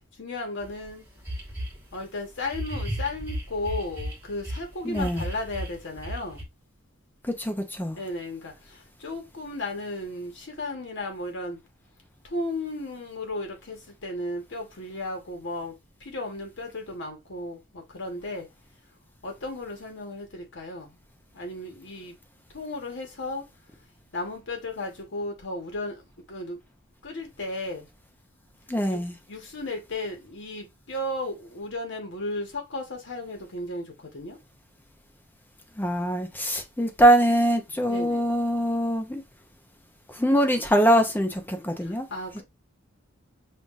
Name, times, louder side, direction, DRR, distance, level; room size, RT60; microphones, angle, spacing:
voice 1, 0.2-1.1 1.9-6.4 8.0-8.5 9.0-11.6 12.3-15.7 16.0-18.5 19.2-20.9 21.3-22.1 22.5-23.4 24.1-26.0 26.3-26.6 27.0-27.9 28.9-29.0 29.3-33.9 34.1-34.4 37.9-38.3 42.1-42.4, left 2 dB, 60° left, 1.0 m, -34 dB
sound 1, 0.6-0.7 1.3-1.8 2.5-4.6 4.9-6.4, equal, 10° right, 1.3 m, -33 dB
voice 2, 4.8-5.2 7.2-8.0 28.7-29.2 35.8-39.2 40.1-42.1, right 1 dB, 10° left, 0.5 m, -23 dB
5.4 x 2.5 x 2.4 m
head